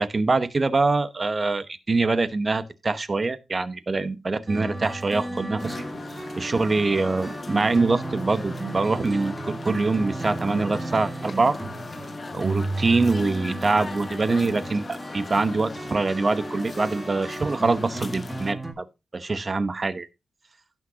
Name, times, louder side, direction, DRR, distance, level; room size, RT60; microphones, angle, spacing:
voice 1, 0.0-5.8 6.4-11.6 12.3-18.8 19.1-20.1, right 3 dB, 30° right, 0.9 m, -24 dB
sound 1, 4.5-18.7, right 2 dB, 15° right, 1.7 m, -34 dB
sound 2, 5.6-18.5, left 4 dB, 35° left, 0.4 m, -39 dB
16.5 x 6.2 x 2.8 m
wide cardioid pair, 150°, 0 cm